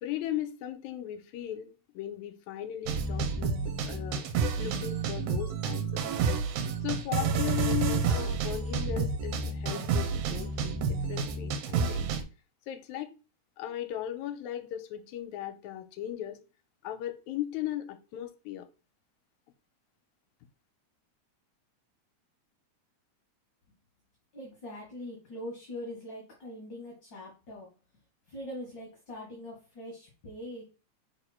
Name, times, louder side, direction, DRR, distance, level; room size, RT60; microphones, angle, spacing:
voice 1, 0.0-4.3 4.6-6.1 6.8-12.1 12.7-13.1 13.6-16.4 16.8-18.7, left 12 dB, 80° left, 2.0 m, -37 dB
sound 1, 2.9-12.2, right 5 dB, 80° right, 2.3 m, -30 dB
voice 2, 24.3-27.7 28.3-30.6, left 1 dB, 45° left, 2.1 m, -42 dB
5.0 x 4.7 x 4.4 m
omnidirectional pair, 3.4 m